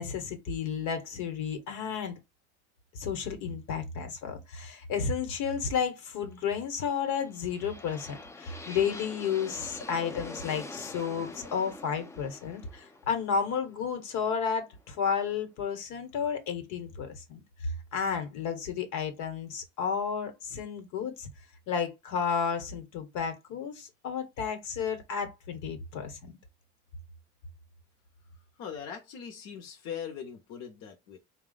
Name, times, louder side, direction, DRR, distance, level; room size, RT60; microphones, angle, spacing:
voice 1, 0.0-2.2 2.9-21.3 21.7-26.4, left 6 dB, 80° left, 1.2 m, -32 dB
sound 1, 6.9-14.8, left 2 dB, 10° left, 0.4 m, -45 dB
voice 2, 28.6-31.2, left 8 dB, 60° left, 0.9 m, -40 dB
4.2 x 2.3 x 3.9 m
cardioid pair, 145°, 29 cm